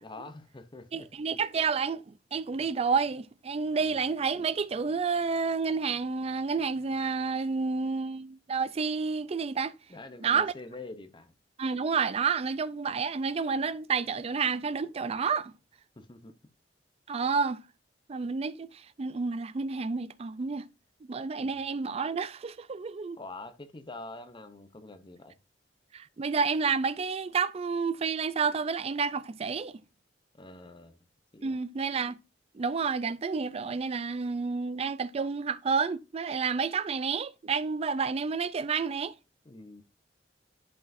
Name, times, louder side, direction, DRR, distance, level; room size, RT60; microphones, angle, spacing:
voice 1, 0.0-1.1 3.8-4.0 9.9-11.3 16.0-16.3 21.4-21.5 23.2-25.4 30.3-31.0 31.3-31.6 39.4-39.8, left 2 dB, 25° left, 0.7 m, -45 dB
voice 2, 0.9-9.7 10.2-10.5 11.6-15.5 17.1-17.6 18.1-18.7 19.0-20.7 21.1-23.2 25.9-29.8 31.4-32.2 32.5-39.1, right 5 dB, 35° right, 0.4 m, -30 dB
11.0 x 4.9 x 2.6 m
head